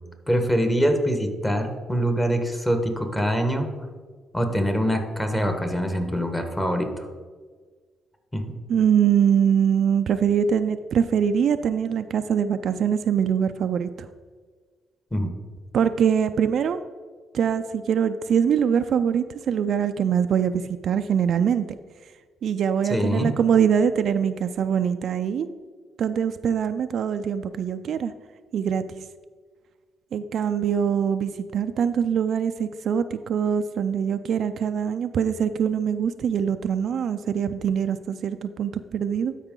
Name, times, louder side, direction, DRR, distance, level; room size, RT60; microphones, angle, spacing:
voice 1, 0.3-3.7 4.3-7.1 8.3-8.5 15.1-15.3 22.9-23.3, equal, 10° left, 5 dB, 1.3 m, -24 dB
voice 2, 8.7-14.1 15.7-16.8 17.3-21.8 22.4-25.5 26.0-28.1 28.5-28.8 30.1-39.3, right 8 dB, 65° right, 10 dB, 0.4 m, -23 dB
12.5 x 4.9 x 3.8 m, 1.5 s
cardioid pair, 90°, 0 cm